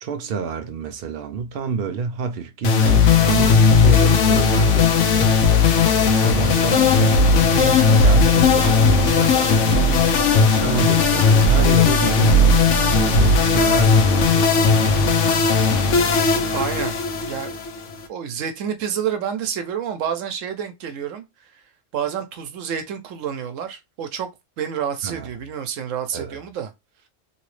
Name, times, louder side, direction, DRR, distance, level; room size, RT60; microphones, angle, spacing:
voice 1, 0.0-5.5 6.1-9.9 10.3-14.7 25.0-25.3 26.1-26.4, right 5 dB, 60° right, 0.7 m, -28 dB
sound 1, 2.6-18.0, left 4 dB, 75° left, 1.0 m, -16 dB
voice 2, 9.7-10.0 16.5-17.6 18.1-21.2 21.9-24.3 24.6-26.7, right 8 dB, 80° right, 1.0 m, -29 dB
3.0 x 2.9 x 3.1 m
omnidirectional pair, 1.3 m